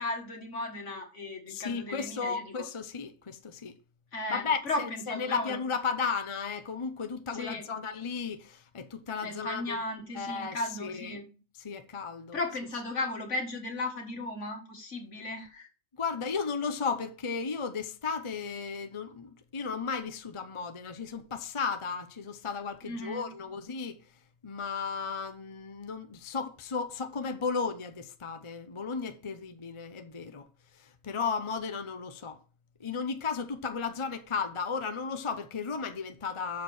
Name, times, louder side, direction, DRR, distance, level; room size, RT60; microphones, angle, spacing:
voice 1, 0.0-2.7 4.1-5.6 7.3-7.7 9.2-11.3 12.3-15.7 22.8-23.3, left 2 dB, 65° left, 2.2 m, -36 dB
voice 2, 1.5-3.8 4.3-9.8 10.1-11.2 11.6-12.4 16.0-24.0 24.4-30.5 30.7-32.4 32.8-36.6, left 5 dB, 30° left, 0.7 m, -34 dB
7.4 x 6.6 x 4.4 m
omnidirectional pair, 1.4 m